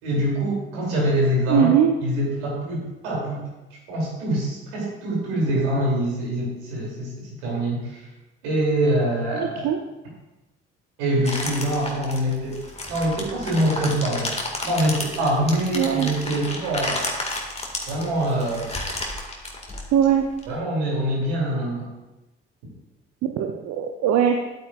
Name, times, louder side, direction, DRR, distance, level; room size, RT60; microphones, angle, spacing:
voice 1, 0.0-1.7 2.0-3.4 3.9-8.1 8.4-9.7 11.0-12.6 12.9-14.3 14.6-17.1 17.9-18.7 20.5-21.9, right 1 dB, 75° right, -4 dB, 3.0 m, -24 dB
voice 2, 1.5-1.9 9.3-9.8 15.7-16.1 19.9-20.3 23.2-24.4, right 9 dB, 60° right, 3 dB, 0.7 m, -20 dB
sound 1, 11.2-20.4, left 2 dB, 20° left, 2.0 m, -32 dB
11.0 x 8.6 x 2.5 m, 1.0 s
hypercardioid pair, 50°, 30 cm